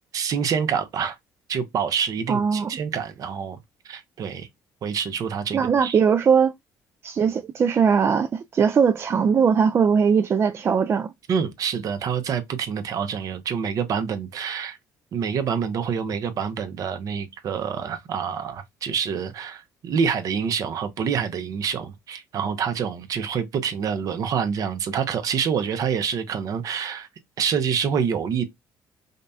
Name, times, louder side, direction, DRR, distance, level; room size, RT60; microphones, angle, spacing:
voice 1, 0.1-1.2 1.5-3.6 3.8-4.5 4.8-6.0 11.3-14.8 15.1-27.1 27.4-28.4, right 7 dB, 55° right, 0.8 m, -27 dB
voice 2, 2.3-2.7 5.5-6.5 7.0-11.1, right 6 dB, 35° right, 0.3 m, -20 dB
5.1 x 2.2 x 2.6 m
cardioid pair, 95°, 7 cm